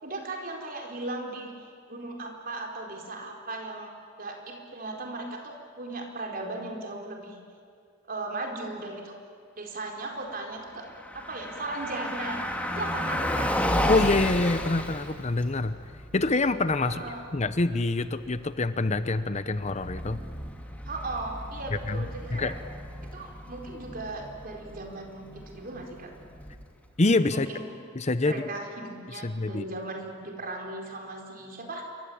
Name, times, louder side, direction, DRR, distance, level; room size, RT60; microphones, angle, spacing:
voice 1, 0.0-3.9 4.2-7.4 8.1-9.2 9.6-10.9 11.1-12.4 12.7-13.5 16.8-17.2 20.9-22.5 23.1-26.1 27.3-27.7 28.2-31.9, right 2 dB, 45° right, 2 dB, 4.4 m, -37 dB
Car passing by, 10.7-26.9, equal, 5° left, 2.4 m, -34 dB
voice 2, 13.9-15.8 16.1-20.2 21.7-22.5 27.0-27.5 27.9-28.4 29.1-29.6, left 2 dB, 35° left, 12 dB, 0.8 m, -26 dB
27.5 x 24.5 x 8.7 m, 2.2 s
head